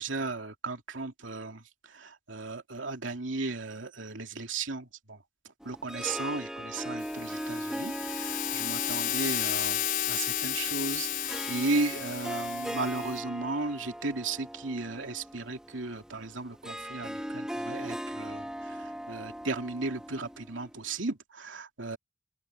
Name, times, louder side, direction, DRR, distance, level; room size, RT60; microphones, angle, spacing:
voice 1, 0.0-5.2 5.6-22.0, right 3 dB, 80° right, 2.7 m, -35 dB
Harp, 5.6-20.9, equal, 5° right, 1.6 m, -39 dB
sound 1, 7.0-13.2, left 11 dB, 50° left, 4.6 m, -33 dB
open air
head